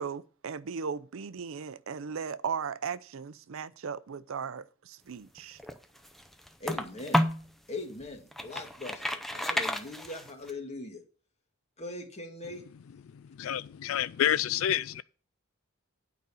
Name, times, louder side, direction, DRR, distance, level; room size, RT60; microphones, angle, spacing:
voice 1, 0.0-5.6, right 6 dB, 70° right, 0.5 m, -37 dB
sound 1, 5.4-7.5 8.0-10.5, equal, ahead, 0.6 m, -31 dB
voice 2, 6.6-7.3 7.7-11.0 11.8-12.6, left 2 dB, 30° left, 1.9 m, -40 dB
voice 3, 13.1-15.0, left 10 dB, 75° left, 0.3 m, -29 dB
9.2 x 5.2 x 6.9 m
head